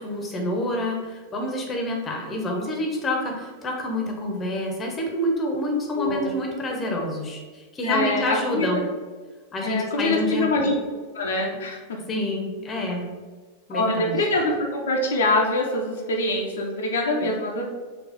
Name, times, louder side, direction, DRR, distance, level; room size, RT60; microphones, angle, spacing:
voice 1, 0.0-8.8 9.5-10.7 12.1-13.1 13.7-14.2 17.2-17.3, left 1 dB, 20° left, 1 dB, 0.8 m, -27 dB
voice 2, 6.0-6.3 7.8-8.8 9.6-10.7 11.1-12.0 13.7-17.6, left 2 dB, 65° left, 0 dB, 0.5 m, -24 dB
4.0 x 2.3 x 3.9 m, 1.4 s
figure-of-eight pair, 90°, 0 cm